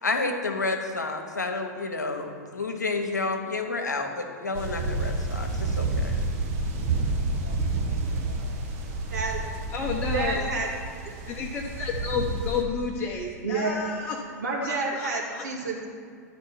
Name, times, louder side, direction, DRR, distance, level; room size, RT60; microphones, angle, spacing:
voice 1, 0.0-6.2 7.4-7.6, left 3 dB, 80° left, 4 dB, 0.9 m, -30 dB
sound 1, 4.5-12.6, right 3 dB, 45° right, 1.2 m, -29 dB
voice 2, 9.1-9.4 10.1-10.7 11.0-11.2 13.4-13.9 14.4-15.9, right 3 dB, 70° right, -2 dB, 2.0 m, -29 dB
voice 3, 9.7-10.5 11.3-14.2 14.6-15.4, left 5 dB, 25° left, -2 dB, 0.9 m, -31 dB
11.5 x 4.3 x 5.6 m, 2.2 s
figure-of-eight pair, 100°, 9 cm